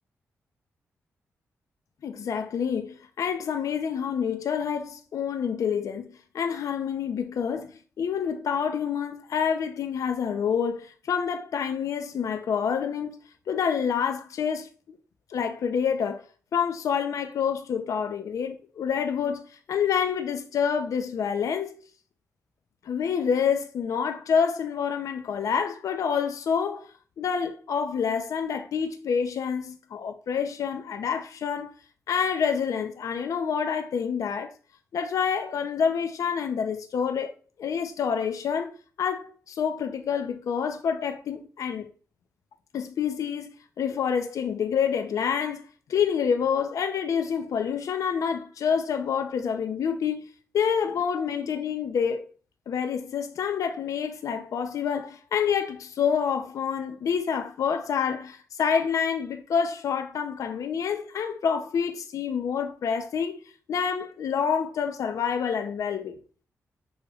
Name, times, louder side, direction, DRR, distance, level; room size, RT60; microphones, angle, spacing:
voice 1, 2.0-13.2 13.5-15.0 15.3-16.3 16.5-21.8 22.8-31.7 32.1-34.5 34.9-37.3 37.6-41.9 42.7-50.3 50.5-52.3 52.7-66.2, left 7 dB, 75° left, 0.6 m, -28 dB
6.4 x 3.2 x 2.4 m
cardioid pair, 70°, 6 cm